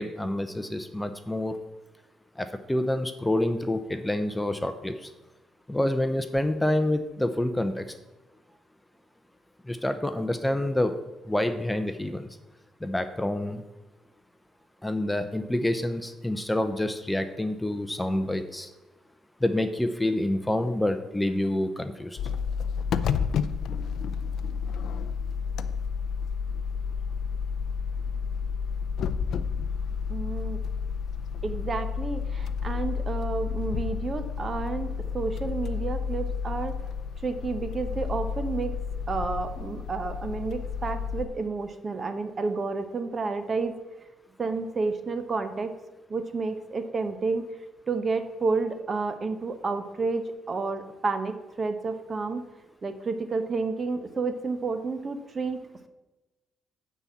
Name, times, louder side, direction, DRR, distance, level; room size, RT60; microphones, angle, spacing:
voice 1, 0.0-1.5 2.4-5.1 5.7-7.8 9.7-10.9 11.3-12.3 12.8-13.6 14.8-18.7 19.4-22.2, left 1 dB, 10° left, 9 dB, 0.6 m, -27 dB
sound 1, 22.2-41.3, left 6 dB, 70° left, 0.5 m, -31 dB
voice 2, 30.1-30.6 31.4-36.8 37.2-38.8 39.1-43.7 44.4-45.7 46.1-47.4 47.9-52.4 52.8-55.9, right 4 dB, 40° right, 9 dB, 0.9 m, -30 dB
9.5 x 4.2 x 7.3 m, 1.1 s
cardioid pair, 90°, 0 cm